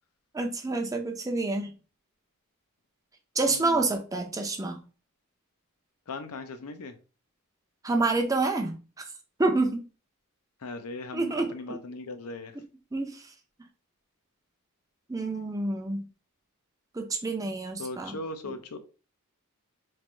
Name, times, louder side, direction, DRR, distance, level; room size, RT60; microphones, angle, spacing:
voice 1, 0.3-1.7 3.4-4.8 7.8-9.0 9.4-9.8 11.1-11.8 12.9-13.3 15.1-16.1 16.9-18.2 18.4-18.6, right 3 dB, 15° right, 0.5 m, -28 dB
voice 2, 3.5-3.9 6.1-7.0 10.6-12.6 17.8-18.8, left 3 dB, 80° left, 0.5 m, -38 dB
3.2 x 2.5 x 4.3 m
head